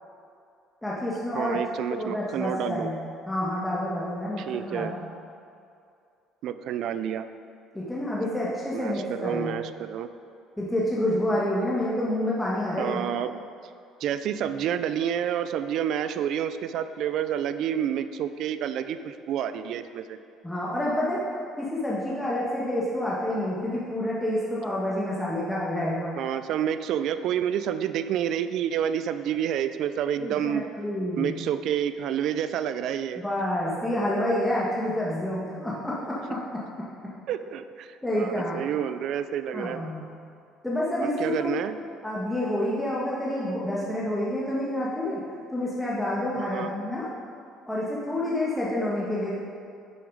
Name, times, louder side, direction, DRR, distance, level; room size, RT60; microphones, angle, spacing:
voice 1, 0.8-1.6 1.9-3.0 3.3-5.0 7.7-9.6 10.6-13.0 20.4-21.2 21.6-26.1 30.2-31.3 33.2-36.4 38.0-38.6 39.5-40.1 40.6-41.5 42.0-45.2 45.5-47.1 47.7-49.3, left 1 dB, 5° left, -6 dB, 1.7 m, -28 dB
voice 2, 1.3-2.9 4.4-4.9 6.4-7.3 8.7-10.1 12.8-13.4 14.0-20.2 26.2-30.6 31.2-33.2 37.3-39.8 41.0-41.8 46.4-46.7, right 9 dB, 65° right, 11 dB, 0.5 m, -29 dB
9.3 x 7.2 x 4.9 m, 2.4 s
supercardioid pair, 85°, 0 cm